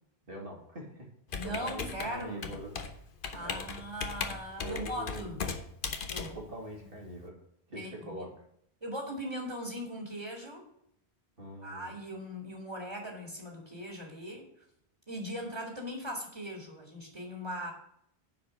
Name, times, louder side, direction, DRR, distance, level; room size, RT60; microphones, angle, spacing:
voice 1, 0.2-1.1 1.4-2.7 3.4-3.7 4.6-5.4 6.2-7.4 7.7-8.3 11.4-11.9, equal, 65° right, -1 dB, 2.5 m, -43 dB
Computer keyboard, 1.3-7.2, left 5 dB, 60° left, 1.0 m, -38 dB
voice 2, 1.3-2.5 3.3-5.4 6.1-6.3 7.7-8.2 8.8-10.6 11.6-14.5 15.1-17.7, equal, 30° right, -1 dB, 2.1 m, -39 dB
10.0 x 4.9 x 6.9 m, 0.72 s
omnidirectional pair, 1.0 m